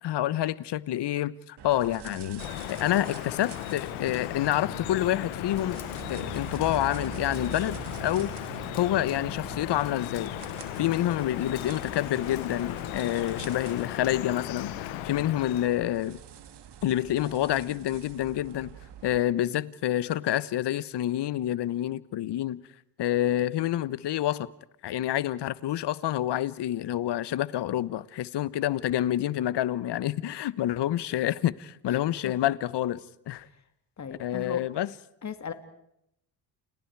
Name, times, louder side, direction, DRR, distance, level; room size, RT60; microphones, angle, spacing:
voice 1, 0.0-5.8 6.1-8.3 8.8-10.3 10.8-16.2 16.8-18.7 19.0-22.6 23.0-24.5 24.8-33.0 33.3-33.5 34.2-34.9, left 13 dB, 60° left, 1.2 m, -28 dB
sound 1, 1.6-19.2, right 8 dB, 60° right, 2.3 m, -44 dB
Drip, 2.4-15.7, left 18 dB, 85° left, 1.0 m, -37 dB
voice 2, 31.9-32.3 34.0-34.6 35.2-35.5, left 7 dB, 35° left, 2.4 m, -37 dB
30.0 x 29.5 x 4.8 m
supercardioid pair, 70°, 46 cm